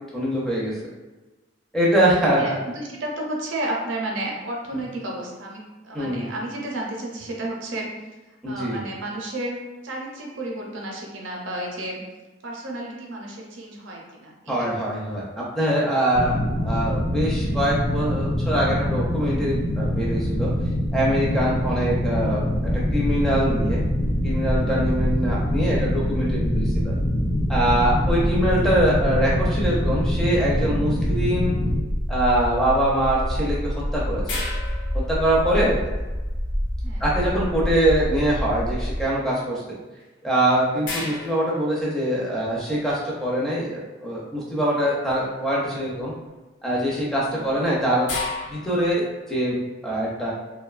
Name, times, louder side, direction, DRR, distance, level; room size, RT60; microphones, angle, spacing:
voice 1, 0.1-0.7 1.7-2.6 5.9-6.3 8.4-8.8 14.5-20.5 20.9-22.5 22.9-23.8 24.2-26.9 27.5-31.6 32.1-34.4 35.1-35.8 37.0-39.6 40.2-46.1 46.6-48.1 48.5-50.3, right 1 dB, ahead, -6 dB, 0.4 m, -23 dB
voice 2, 2.3-7.9 8.5-9.6 9.8-12.0 12.4-14.7 21.7-21.9 25.1-25.4 36.8-37.1 47.3-47.5, right 1 dB, 70° right, -2 dB, 0.5 m, -32 dB
sound 1, 16.1-31.8, equal, 35° left, 1.0 m, -25 dB
sound 2, 22.5-39.1, equal, 90° left, 1.0 m, -28 dB
sound 3, 34.3-35.8 40.0-40.1 40.8-42.4 45.1-45.4 45.9-46.3 47.2-49.1, left 3 dB, 65° left, 0.5 m, -35 dB
2.5 x 2.2 x 2.3 m, 1.2 s
head